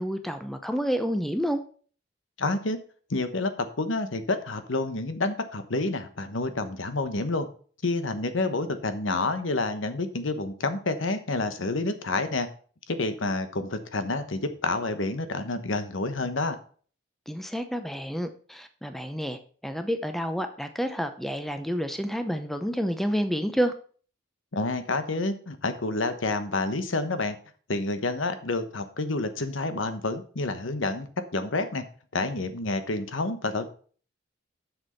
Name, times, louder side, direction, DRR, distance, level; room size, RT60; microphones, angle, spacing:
voice 1, 0.0-1.6 17.3-23.7, equal, ahead, 7 dB, 0.7 m, -29 dB
voice 2, 2.4-2.8 3.1-7.5 7.8-12.5 12.9-16.6 24.5-27.4 27.7-31.1 31.3-31.8 32.1-33.7, left 2 dB, 80° left, 9 dB, 1.1 m, -29 dB
8.0 x 6.2 x 5.7 m, 0.43 s
head